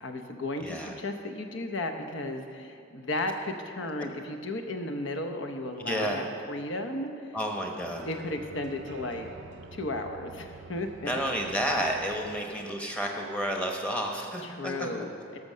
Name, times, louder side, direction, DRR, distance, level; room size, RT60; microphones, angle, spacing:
voice 1, 0.0-7.4 8.1-9.3 9.7-11.2 14.4-15.4, left 2 dB, 60° left, 6 dB, 0.9 m, -34 dB
voice 2, 0.6-0.9 5.8-6.3 7.3-8.0 11.0-14.9, equal, 5° left, 1 dB, 1.0 m, -31 dB
sound 1, 7.7-12.4, right 3 dB, 55° right, 0.6 m, -48 dB
12.0 x 6.7 x 6.2 m, 2.4 s
head